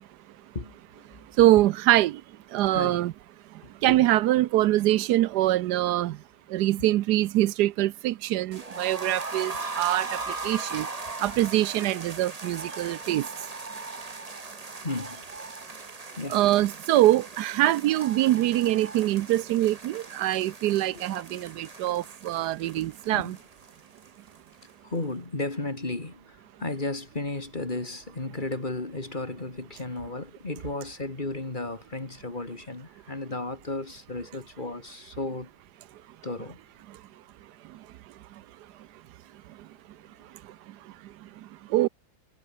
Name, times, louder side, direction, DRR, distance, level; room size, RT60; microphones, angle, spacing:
voice 1, 0.5-1.1 2.7-3.0 3.8-4.0 9.5-9.6 14.8-15.2 16.1-16.4 20.9-21.2 21.7-22.0 22.8-23.4 24.8-35.5 36.2-36.6, left 2 dB, 30° left, 2.8 m, -34 dB
voice 2, 1.4-2.2 2.5-3.1 3.8-6.2 6.5-10.2 10.4-10.9 11.2-13.2 16.3-23.4 41.7-41.9, right 15 dB, 85° right, 1.2 m, -24 dB
sound 1, 8.5-24.4 24.6-24.7 25.0-25.1, right 3 dB, 25° right, 1.6 m, -39 dB
omnidirectional pair, 1.7 m